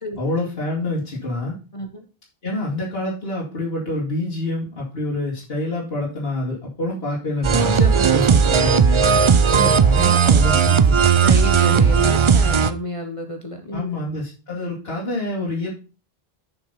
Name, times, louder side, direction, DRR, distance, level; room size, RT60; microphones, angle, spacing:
voice 1, 0.2-1.6 2.4-9.0 9.5-11.0 11.6-11.8 13.7-15.7, left 2 dB, 70° left, -5 dB, 2.6 m, -27 dB
voice 2, 1.7-2.0 9.2-9.4 11.0-14.0, equal, 35° left, 5 dB, 1.0 m, -31 dB
sound 1, 7.4-12.7, right 6 dB, 45° right, 0.4 m, -16 dB
7.1 x 5.9 x 5.6 m, 0.34 s
omnidirectional pair, 1.0 m